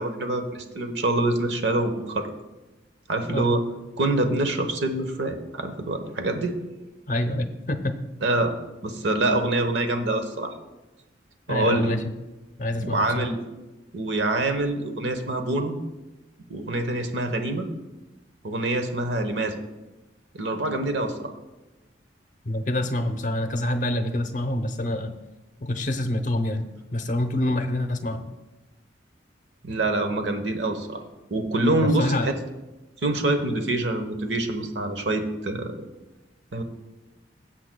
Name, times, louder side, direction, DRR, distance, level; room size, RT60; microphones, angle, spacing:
voice 1, 0.0-2.3 3.1-3.6 4.0-6.6 8.2-8.5 8.8-10.5 11.5-11.9 12.8-13.4 13.9-15.8 16.5-17.7 18.4-19.6 20.3-21.3 29.6-31.0 31.3-32.3 33.0-35.8 36.5-36.6, right 2 dB, 70° right, 7 dB, 1.0 m, -25 dB
voice 2, 7.1-8.0 11.5-12.0 12.6-13.3 22.5-25.2 25.6-28.3 31.8-32.3, left 1 dB, 45° left, 8 dB, 0.8 m, -26 dB
16.5 x 7.7 x 2.3 m, 1.1 s
head